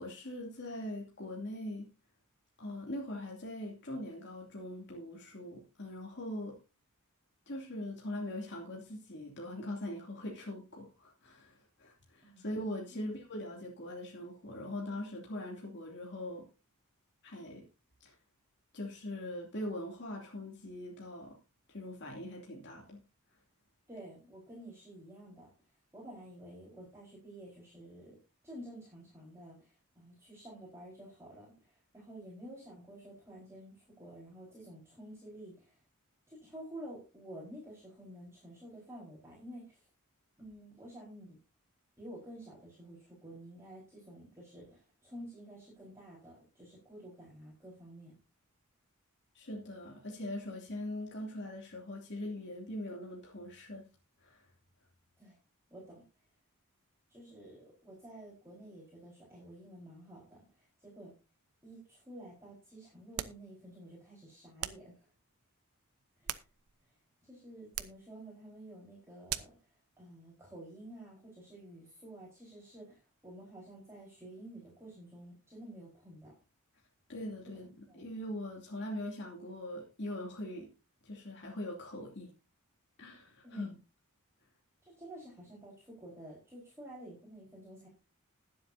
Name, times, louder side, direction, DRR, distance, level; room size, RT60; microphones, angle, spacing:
voice 1, 0.0-1.9 2.6-6.6 7.5-16.4 17.2-17.6 18.0-18.1 18.7-21.4 21.7-23.0 49.3-53.8 54.2-54.5 77.1-77.7 77.9-80.7 81.0-82.3 83.0-83.7, left 1 dB, 55° left, -2 dB, 2.7 m, -41 dB
voice 2, 23.9-25.5 25.9-28.2 28.4-35.8 36.3-39.9 40.4-41.4 42.0-48.1 55.2-55.4 55.7-56.0 57.1-61.1 61.6-65.1 66.2-66.4 66.8-66.9 67.2-69.5 70.0-76.3 77.9-78.1 83.4-83.8 84.8-87.9, right 1 dB, 15° right, -6 dB, 4.5 m, -51 dB
sound 1, 63.1-63.5 64.6-64.9 66.0-66.9 67.7-68.1 69.3-69.6, right 11 dB, 90° right, 0.8 m, -40 dB
21.0 x 7.8 x 2.7 m, 0.30 s
head